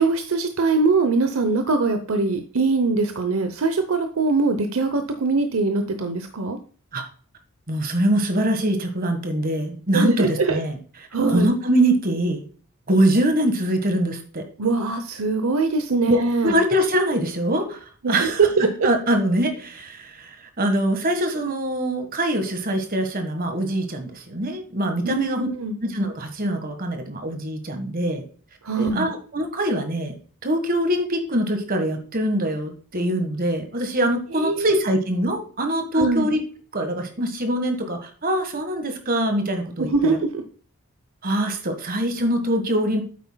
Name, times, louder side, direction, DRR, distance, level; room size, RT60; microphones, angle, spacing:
voice 1, 0.0-6.6 9.9-10.6 11.1-11.5 14.6-16.6 18.0-18.9 25.0-25.8 28.6-29.1 34.3-34.8 35.9-36.3 39.8-40.4, right 3 dB, 70° right, 7 dB, 0.8 m, -22 dB
voice 2, 7.7-10.8 11.3-12.4 12.9-14.4 16.1-18.4 18.8-25.5 25.8-28.2 28.8-30.1 30.4-36.4 36.7-40.2 41.2-43.0, right 1 dB, 40° right, 6 dB, 1.5 m, -23 dB
9.2 x 8.1 x 2.3 m, 0.41 s
head